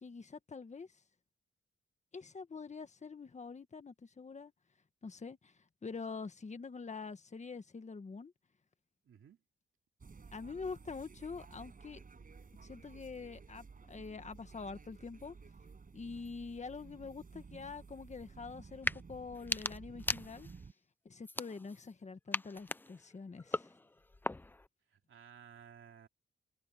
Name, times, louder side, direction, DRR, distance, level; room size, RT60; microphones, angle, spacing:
voice 1, 0.0-0.9 2.1-4.5 5.0-5.5 5.8-8.3 10.3-12.0 12.6-15.3 15.9-20.5 21.0-23.7, left 4 dB, 35° left, 1.6 m, -45 dB
voice 2, 9.0-9.4 24.9-26.1, right 8 dB, 75° right, 2.8 m, -56 dB
sound 1, 10.0-20.7, right 5 dB, 40° right, 7.1 m, -54 dB
sound 2, 18.7-19.0 19.3-20.7 21.2-21.9 22.3-24.7, left 2 dB, 10° left, 0.4 m, -39 dB
wide cardioid pair, 115°, 21 cm